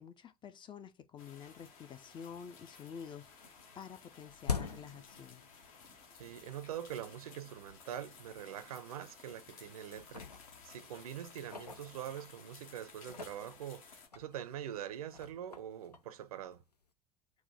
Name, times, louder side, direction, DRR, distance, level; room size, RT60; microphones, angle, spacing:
voice 1, 0.0-3.3 3.7-5.4, left 7 dB, 25° left, 0.4 m, -49 dB
sound 1, 1.2-14.1, left 5 dB, 60° left, 1.0 m, -57 dB
sound 2, 2.5-2.7 3.0-5.9 6.2-6.3 7.1-7.2 7.7-7.8 8.1-8.3 9.0-9.5 9.9-12.5 12.9-16.9, left 5 dB, 85° left, 0.4 m, -45 dB
voice 2, 6.2-16.6, right 10 dB, 65° right, 0.5 m, -44 dB
4.6 x 2.1 x 4.0 m
figure-of-eight pair, 70°, 20 cm